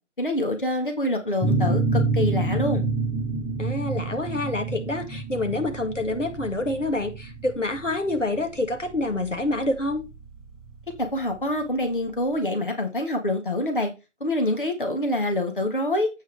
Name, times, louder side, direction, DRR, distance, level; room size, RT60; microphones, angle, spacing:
voice 1, 0.2-2.8 11.0-13.9 14.2-16.1, left 1 dB, 45° left, 4 dB, 1.6 m, -26 dB
sound 1, 1.4-10.8, right 3 dB, ahead, 0.6 m, -28 dB
voice 2, 3.6-10.0, left 2 dB, 85° left, 5 dB, 2.2 m, -27 dB
9.5 x 8.2 x 3.3 m, 0.27 s
figure-of-eight pair, 165°, 36 cm